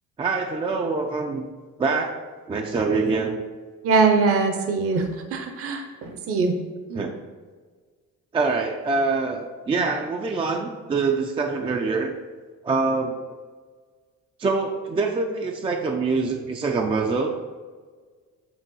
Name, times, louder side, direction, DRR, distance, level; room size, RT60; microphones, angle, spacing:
voice 1, 0.2-1.5 1.8-2.2 2.5-3.4 6.9-7.1 8.3-12.1 12.6-13.2 14.4-17.3, right 4 dB, 20° right, 3 dB, 0.3 m, -24 dB
voice 2, 3.8-6.6 6.9-7.0, right 4 dB, 50° right, 5 dB, 0.8 m, -22 dB
8.1 x 2.9 x 5.5 m, 1.5 s
cardioid pair, 155°, 29 cm